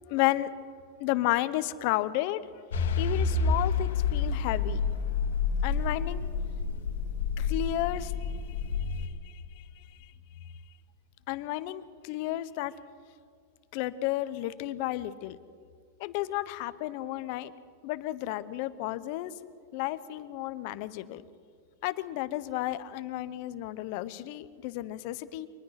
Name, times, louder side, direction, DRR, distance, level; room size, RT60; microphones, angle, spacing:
voice 1, 0.1-0.5 1.0-2.4 3.0-4.8 5.6-6.3 7.4-8.3 8.8-10.1 11.3-12.7 13.7-15.4 16.0-17.5 17.8-19.3 19.7-21.2 21.8-25.5, left 15 dB, 45° left, 14 dB, 0.8 m, -32 dB
sound 1, 2.7-9.1, left 5 dB, 85° left, 2.0 m, -29 dB
24.0 x 19.5 x 5.9 m, 2.2 s
supercardioid pair, 165°, 0 cm